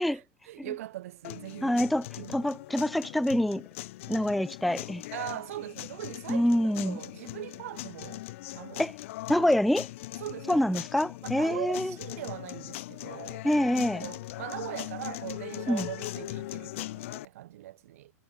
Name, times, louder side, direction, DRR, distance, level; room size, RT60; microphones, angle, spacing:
voice 1, 0.1-2.5 5.1-8.3 8.5-8.9 10.2-10.8 11.2-13.5 14.0-18.1, right 14 dB, 60° right, 1.3 m, -41 dB
sound 1, 1.2-17.3, left 18 dB, 50° left, 5.6 m, -40 dB
voice 2, 1.6-2.1 2.3-3.6 4.1-5.0 6.3-7.0 8.8-8.9 9.3-9.9 10.5-11.9 13.4-14.0 15.7-15.9, left 1 dB, ahead, 0.3 m, -26 dB
supercardioid pair, 165°, 9 cm